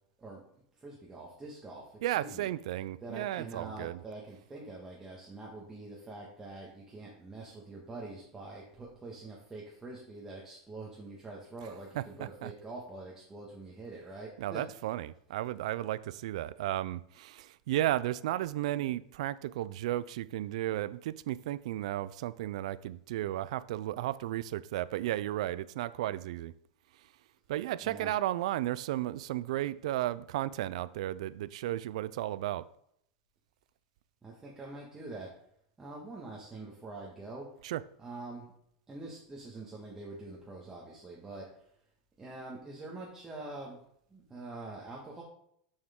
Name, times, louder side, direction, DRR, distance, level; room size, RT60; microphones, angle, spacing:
voice 1, 0.8-2.5 3.0-14.6 27.8-28.1 34.2-35.3 35.8-37.5 38.0-38.4 38.9-41.5 42.2-43.8 44.1-45.2, right 2 dB, 15° right, 1.5 m, -45 dB
voice 2, 2.0-4.0 12.0-12.5 14.4-26.5 27.5-32.7 37.6-37.8, right 14 dB, 75° right, 0.4 m, -34 dB
7.2 x 6.4 x 3.7 m
supercardioid pair, 135°, 3 cm